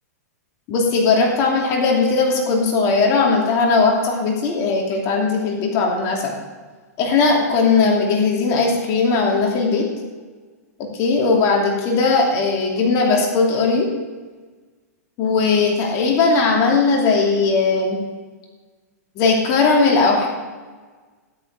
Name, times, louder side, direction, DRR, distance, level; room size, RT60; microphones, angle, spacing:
voice 1, 0.7-6.4 7.0-9.9 10.9-13.9 15.2-18.0 19.2-20.3, left 4 dB, 40° left, 0 dB, 2.7 m, -18 dB
13.0 x 11.0 x 4.9 m, 1.4 s
hypercardioid pair, 125°, 9 cm